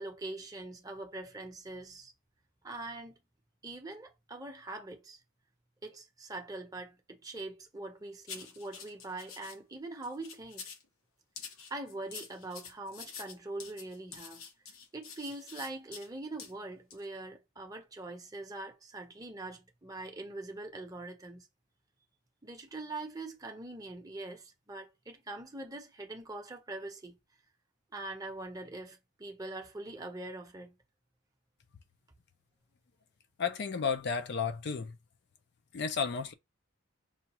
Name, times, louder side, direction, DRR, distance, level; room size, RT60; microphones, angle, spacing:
voice 1, 0.0-2.1 2.6-3.2 3.6-5.2 5.8-10.6 11.7-14.4 14.9-21.5 22.4-27.2 27.9-30.7, right 2 dB, 15° right, 0.7 m, -43 dB
sound 1, 8.3-9.6 10.0-10.9 11.4-16.1 16.4-16.5 16.9-17.0, left 6 dB, 85° left, 0.8 m, -47 dB
voice 2, 33.4-34.9 35.7-36.3, left 6 dB, 50° left, 0.4 m, -32 dB
5.5 x 2.3 x 2.9 m
head